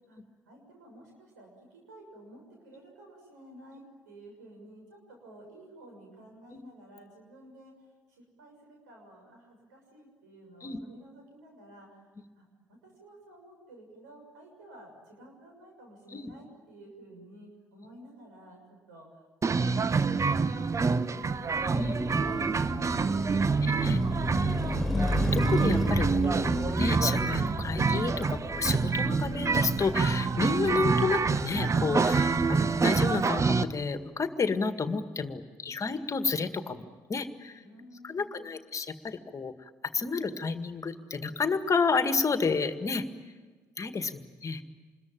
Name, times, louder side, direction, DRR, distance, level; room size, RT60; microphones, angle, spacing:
voice 1, 0.4-12.0 12.3-21.9 22.2-24.9 37.6-38.5, right 1 dB, 85° right, 1 dB, 6.6 m, -52 dB
sound 1, 19.4-33.6, right 4 dB, 35° right, 1.0 m, -27 dB
Car passing by, 21.2-33.5, left 1 dB, ahead, 3.5 m, -35 dB
voice 2, 23.6-24.0 24.9-37.6 38.0-43.1 43.8-44.6, left 4 dB, 35° left, 9 dB, 1.9 m, -31 dB
27.0 x 21.5 x 9.1 m, 1.4 s
hypercardioid pair, 50°, 9 cm